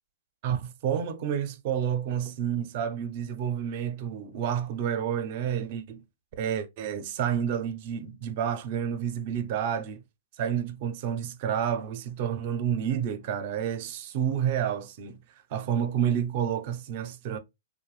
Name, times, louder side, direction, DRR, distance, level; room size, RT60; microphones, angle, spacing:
voice 1, 0.4-6.0 6.4-10.0 10.4-15.2 15.5-17.4, right 9 dB, 45° right, 0.5 m, -29 dB
2.5 x 2.1 x 3.1 m
hypercardioid pair, 130°, 0 cm